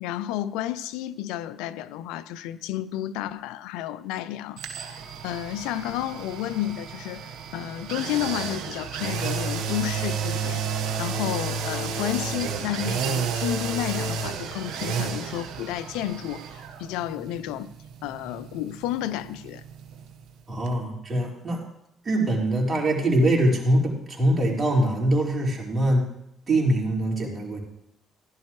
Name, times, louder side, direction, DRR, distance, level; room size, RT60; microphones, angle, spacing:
voice 1, 0.0-17.7 18.0-19.6, left 13 dB, 85° left, 0.4 m, -31 dB
sound 1, 4.6-20.4 20.7-20.8, right 6 dB, 75° right, 1.2 m, -32 dB
voice 2, 20.5-21.6 22.0-26.0 26.5-27.6, right 1 dB, 35° right, 4.6 m, -23 dB
16.0 x 11.5 x 3.2 m
supercardioid pair, 60°, 0 cm